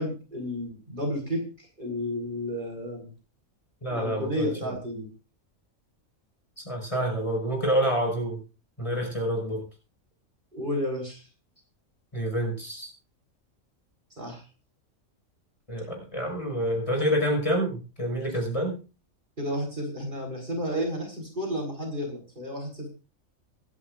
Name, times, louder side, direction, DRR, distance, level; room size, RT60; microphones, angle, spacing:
voice 1, 0.0-1.4 1.8-3.1 3.9-5.1 10.5-11.2 14.2-14.4 19.4-22.9, equal, 35° right, 1 dB, 4.3 m, -32 dB
voice 2, 3.8-4.7 6.7-8.4 8.8-9.6 12.1-12.9 15.7-18.8, equal, 25° left, 1 dB, 5.4 m, -27 dB
26.0 x 11.0 x 2.5 m, 0.33 s
omnidirectional pair, 1.4 m